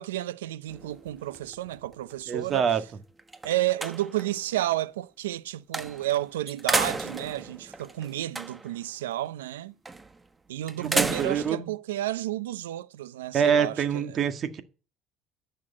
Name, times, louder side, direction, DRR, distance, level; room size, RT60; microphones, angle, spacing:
voice 1, 0.0-2.7 3.4-9.7 10.5-14.2, right 14 dB, 85° right, 0.5 m, -31 dB
sound 1, 0.7-2.2 2.7-2.8 3.2-4.4 5.7-6.2 6.5-8.8 9.9-10.2 10.7-11.6, right 3 dB, 20° right, 1.3 m, -32 dB
voice 2, 2.3-2.8 10.8-11.7 13.3-14.6, right 7 dB, 45° right, 1.7 m, -26 dB
10.5 x 6.6 x 8.7 m
hypercardioid pair, 70°, 0 cm